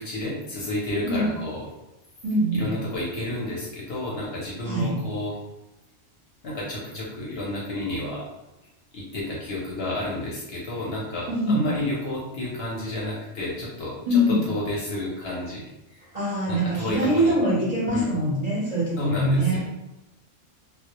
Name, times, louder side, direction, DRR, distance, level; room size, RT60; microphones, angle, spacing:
voice 1, 0.0-1.6 2.5-5.4 6.4-8.3 8.9-16.1 16.5-17.3 17.9-18.1 19.0-19.6, left 1 dB, 60° left, -5 dB, 0.7 m, -31 dB
voice 2, 2.2-2.7 4.6-4.9 11.3-11.7 14.1-14.4 16.1-19.6, equal, 40° right, -9 dB, 0.6 m, -23 dB
2.1 x 2.0 x 2.8 m, 0.98 s
omnidirectional pair, 1.3 m